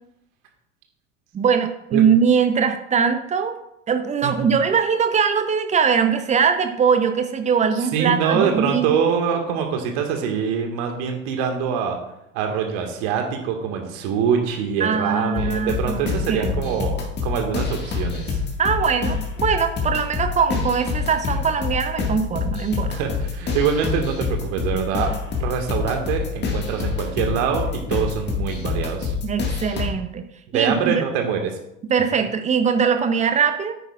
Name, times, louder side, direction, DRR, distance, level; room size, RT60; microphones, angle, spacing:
voice 1, 1.3-3.6 3.9-9.0 14.8-16.8 18.6-22.9 29.2-30.2 30.5-31.0 31.9-33.7, right 6 dB, 20° right, 8 dB, 0.7 m, -21 dB
voice 2, 4.2-4.6 7.7-12.0 12.3-18.4 22.9-25.1 25.4-29.1 30.5-31.5, right 7 dB, 50° right, 3 dB, 1.9 m, -24 dB
sound 1, 15.3-29.9, left 5 dB, 25° left, 1.9 m, -27 dB
10.5 x 9.0 x 2.5 m, 0.81 s
figure-of-eight pair, 80°, 40 cm